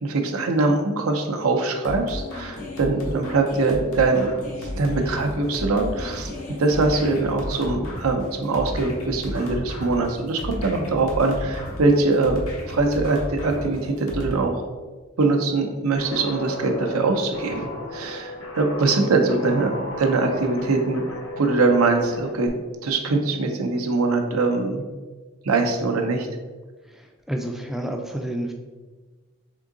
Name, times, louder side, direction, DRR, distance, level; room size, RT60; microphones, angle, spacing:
voice 1, 0.0-4.3 4.6-6.3 6.6-14.5 15.2-21.1 21.4-22.5 22.8-24.8 25.4-26.3, right 3 dB, 85° right, 4 dB, 0.6 m, -22 dB
sound 1, 1.8-14.3, left 1 dB, 85° left, 1.0 m, -33 dB
Guitar, 16.0-22.5, left 1 dB, 65° left, 0.8 m, -35 dB
voice 2, 27.3-28.5, right 1 dB, ahead, 2 dB, 0.3 m, -29 dB
3.7 x 3.6 x 3.7 m, 1.3 s
head